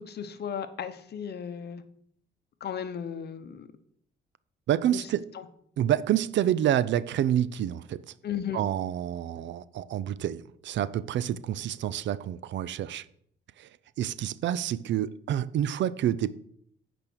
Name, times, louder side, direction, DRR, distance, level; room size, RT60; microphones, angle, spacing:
voice 1, 0.1-1.8 2.6-3.7 4.9-5.1 5.3-5.5 8.2-8.6, left 8 dB, 55° left, 10 dB, 0.9 m, -35 dB
voice 2, 4.7-5.2 5.8-8.0 8.5-13.0 13.6-13.7 14.0-16.3, right 11 dB, 65° right, 17 dB, 0.5 m, -28 dB
8.8 x 5.2 x 6.2 m, 0.67 s
cardioid pair, 90°, 20 cm